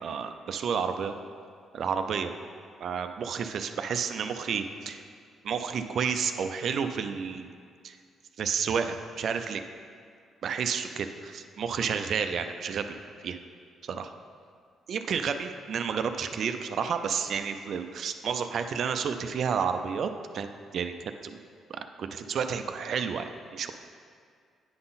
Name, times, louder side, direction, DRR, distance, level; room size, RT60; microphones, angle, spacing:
voice 1, 0.0-1.1 1.7-2.3 2.8-5.0 5.4-7.5 7.8-8.0 8.4-9.6 10.4-13.0 13.2-13.4 13.8-14.1 14.9-21.4 21.7-23.7, right 6 dB, 60° right, 8 dB, 0.4 m, -31 dB
9.4 x 3.9 x 4.0 m, 2.2 s
cardioid pair, 90°, 0 cm